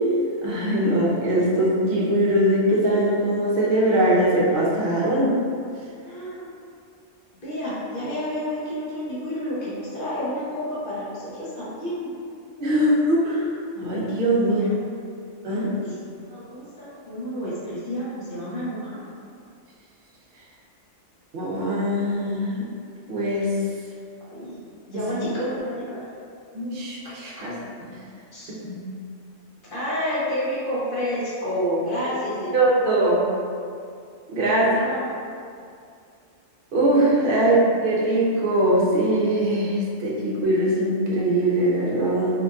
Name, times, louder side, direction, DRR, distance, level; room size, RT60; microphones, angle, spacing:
voice 1, 0.4-5.3 12.6-13.4 13.8-14.6 15.4-15.7 21.3-22.6 23.1-23.6 24.9-25.0 26.5-27.5 28.5-28.8 32.5-33.2 34.3-34.8 36.7-42.4, right 1 dB, 55° right, -5 dB, 0.6 m, -21 dB
voice 2, 6.0-6.5 7.4-12.1 14.4-14.7 15.4-19.0 24.3-24.5 24.9-26.0 28.3-28.5 29.7-32.5 32.9-33.4 34.4-35.2 37.3-37.5, equal, 50° left, -10 dB, 0.8 m, -30 dB
2.8 x 2.5 x 2.3 m, 2.3 s
omnidirectional pair, 1.3 m